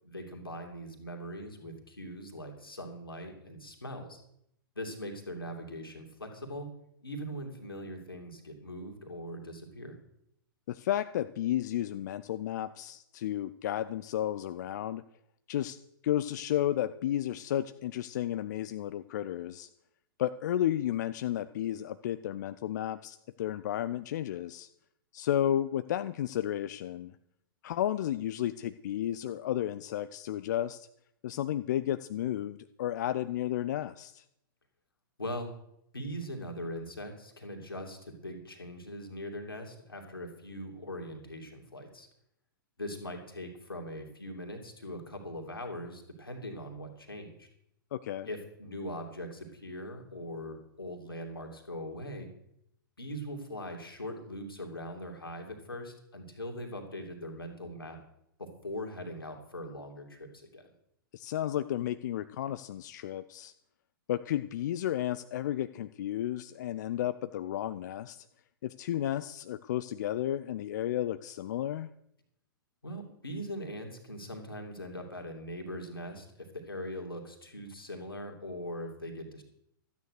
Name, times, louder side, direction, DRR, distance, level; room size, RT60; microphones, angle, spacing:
voice 1, 0.0-4.2 4.7-6.7 7.0-10.0 35.2-35.5 35.9-42.1 42.8-47.5 48.2-52.3 53.0-58.0 58.4-60.7 72.8-79.4, equal, 85° left, 3 dB, 2.7 m, -41 dB
voice 2, 10.7-15.0 15.5-15.8 16.0-19.7 20.2-24.7 25.1-27.1 27.6-30.9 31.2-34.2 47.9-48.3 61.1-63.5 64.1-68.2 68.6-71.9, left 12 dB, 55° left, 12 dB, 0.5 m, -32 dB
13.0 x 9.4 x 6.5 m, 0.76 s
figure-of-eight pair, 110°, 12 cm